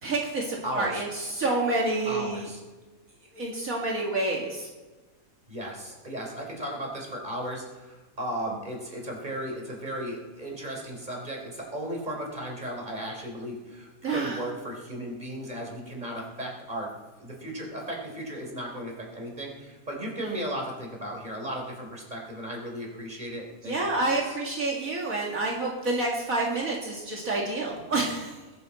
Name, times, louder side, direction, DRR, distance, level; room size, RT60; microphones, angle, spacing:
voice 1, 0.0-2.5 3.3-4.7 14.0-14.4 23.6-28.4, right 2 dB, 70° right, -2 dB, 2.4 m, -28 dB
voice 2, 0.6-1.0 2.1-2.6 5.5-16.9 17.2-23.8 24.1-24.3, right 1 dB, 30° right, 0 dB, 3.8 m, -35 dB
21.0 x 14.0 x 4.2 m, 1.2 s
omnidirectional pair, 1.5 m